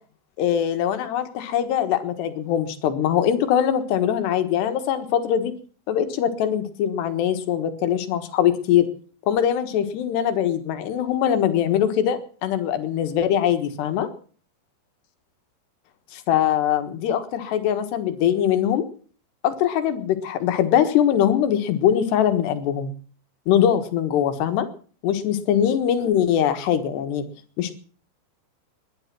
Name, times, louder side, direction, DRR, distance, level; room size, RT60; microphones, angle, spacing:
voice 1, 0.4-5.5 5.9-8.9 9.3-14.1 16.1-18.9 19.4-22.9 23.5-24.7 25.0-27.2 27.6-27.7, left 10 dB, 80° left, 8 dB, 3.7 m, -22 dB
20.5 x 11.5 x 6.1 m, 0.43 s
omnidirectional pair, 4.7 m